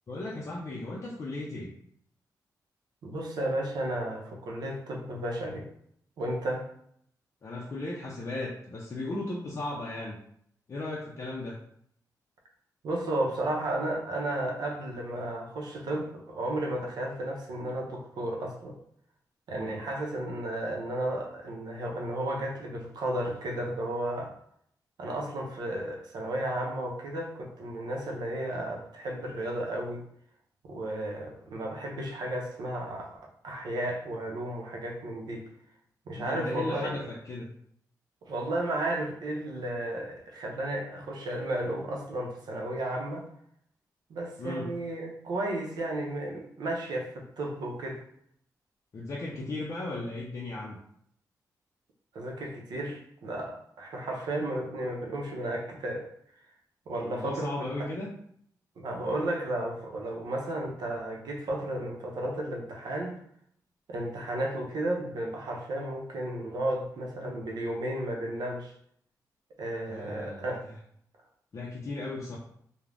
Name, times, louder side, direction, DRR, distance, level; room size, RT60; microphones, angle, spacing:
voice 1, 0.1-1.7 7.4-10.2 10.7-11.6 19.5-19.8 36.2-37.5 44.4-44.7 48.9-50.8 57.0-58.1 69.9-70.5 71.5-72.4, left 2 dB, 45° left, -4 dB, 0.4 m, -36 dB
voice 2, 3.0-5.7 6.2-6.7 12.8-18.8 19.5-24.4 25.0-30.1 30.6-35.5 36.1-37.0 38.2-43.2 44.1-48.0 52.1-56.1 56.9-57.7 58.8-63.2 63.9-68.7 69.6-70.6, right 1 dB, 80° right, 0 dB, 0.6 m, -33 dB
2.4 x 2.0 x 3.2 m, 0.68 s
wide cardioid pair, 115°, 7 cm